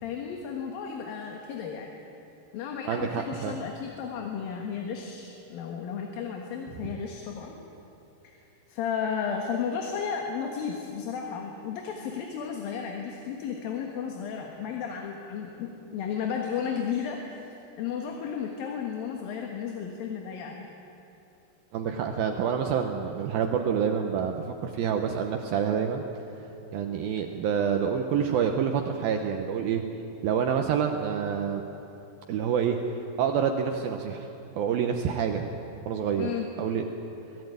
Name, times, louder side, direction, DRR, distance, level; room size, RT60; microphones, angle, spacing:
voice 1, 0.0-1.9 2.5-7.5 8.2-8.4 8.7-17.5 17.8-20.7 36.2-36.5, left 7 dB, 65° left, 2 dB, 3.0 m, -33 dB
voice 2, 2.9-3.5 21.7-24.4 24.6-26.0 26.7-29.8 30.2-31.6 32.3-32.8 33.2-34.3 34.6-35.5 35.9-36.3 36.6-36.9, right 7 dB, 70° right, 4 dB, 2.5 m, -27 dB
24.0 x 17.5 x 9.3 m, 2.8 s
omnidirectional pair, 4.9 m